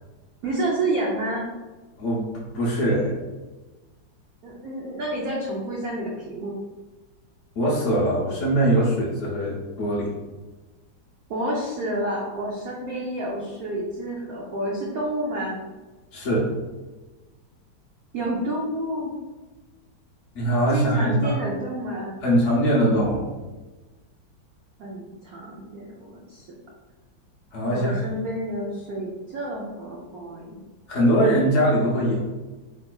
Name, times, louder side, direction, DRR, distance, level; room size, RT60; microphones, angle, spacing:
voice 1, 0.4-1.4 4.4-6.6 11.3-15.6 18.1-19.1 20.7-22.2 24.8-26.5 27.7-30.6, right 1 dB, 85° right, -3 dB, 0.7 m, -29 dB
voice 2, 2.0-3.1 7.6-10.1 16.1-16.5 20.3-21.4 22.2-23.3 27.5-28.0 30.9-32.2, right 1 dB, 85° left, -5 dB, 0.6 m, -22 dB
3.3 x 3.0 x 2.2 m, 1.2 s
omnidirectional pair, 2.1 m